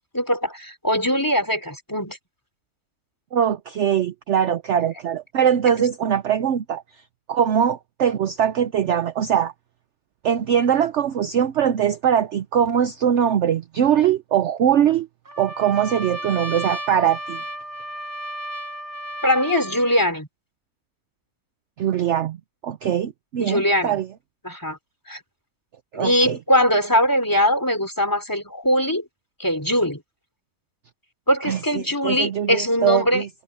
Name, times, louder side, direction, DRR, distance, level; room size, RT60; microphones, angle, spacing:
voice 1, 0.1-2.2 5.7-5.8 19.2-20.3 23.4-24.0 24.4-24.8 25.1-25.2 25.9-29.0 29.4-30.0 31.3-33.2, equal, 15° left, 3.2 m, -21 dB
voice 2, 3.3-6.8 7.3-9.5 10.2-15.1 15.4-17.4 21.8-22.4 22.6-24.1 25.9-26.4 31.5-33.3, right 9 dB, 60° right, 0.9 m, -21 dB
Trumpet, 15.3-20.1, right 1 dB, 10° right, 3.6 m, -33 dB
omnidirectional pair, 1.6 m